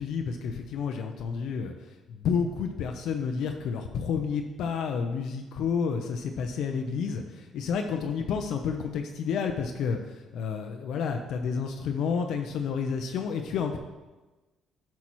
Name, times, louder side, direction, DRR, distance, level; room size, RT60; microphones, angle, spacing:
voice 1, 0.0-1.7 2.1-13.8, left 6 dB, 70° left, 4 dB, 0.6 m, -30 dB
10.5 x 5.8 x 3.0 m, 1.2 s
cardioid pair, 115°, 0 cm